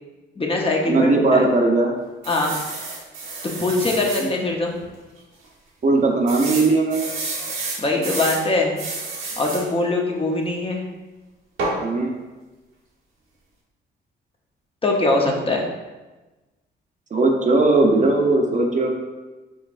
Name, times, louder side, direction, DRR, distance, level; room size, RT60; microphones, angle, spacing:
voice 1, 0.4-1.4 2.3-2.6 3.6-4.7 7.8-8.7 9.4-10.8 14.8-15.6, left 2 dB, 30° left, 0 dB, 0.8 m, -22 dB
voice 2, 0.9-1.9 4.2-4.3 5.8-7.1 11.8-12.1 17.1-18.9, right 3 dB, 40° right, 1 dB, 0.7 m, -18 dB
sound 1, 2.2-4.3 4.8-4.9 5.2-5.3 6.3-8.4 8.8-9.7 11.6-11.8, right 3 dB, 80° right, 1.1 m, -30 dB
5.4 x 3.8 x 2.5 m, 1.2 s
cardioid pair, 90°, 20 cm